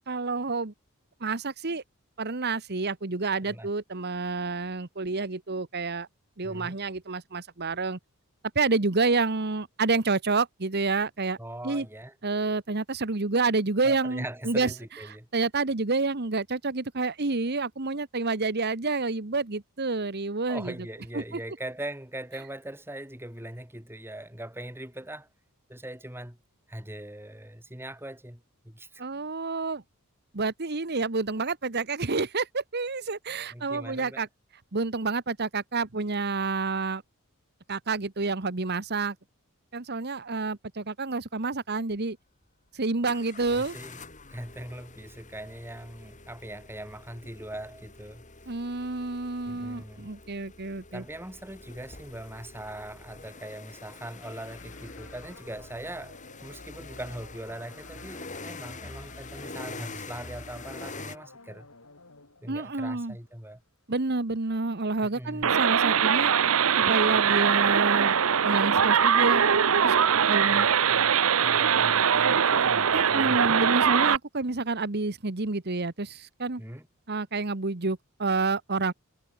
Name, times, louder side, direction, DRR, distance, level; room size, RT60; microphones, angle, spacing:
voice 1, 0.1-0.7 1.2-1.8 2.2-6.1 6.4-8.0 8.5-11.4 11.6-11.9 12.2-14.7 15.3-20.7 21.1-21.2 29.0-29.8 30.3-34.3 34.7-37.0 37.7-39.1 39.7-42.2 42.7-43.8 48.5-51.0 62.5-63.2 63.9-66.3 66.8-68.2 68.4-69.4 69.8-69.9 70.3-70.6 72.9-76.6 77.1-78.9, right 3 dB, 50° right, 1.3 m, -29 dB
voice 2, 6.4-6.8 11.4-12.1 13.8-15.3 20.5-25.3 25.7-26.4 26.7-29.0 33.5-34.2 43.5-44.0 44.3-48.2 49.5-50.1 50.9-61.7 62.4-63.6 65.0-65.5 70.5-73.4 76.6-76.9, right 1 dB, 10° right, 4.9 m, -41 dB
sound 1, 41.9-42.0 43.1-61.2, left 3 dB, 35° left, 5.1 m, -45 dB
sound 2, 54.2-63.6, left 4 dB, 70° left, 4.4 m, -53 dB
sound 3, 65.4-74.2, right 7 dB, 70° right, 0.8 m, -22 dB
head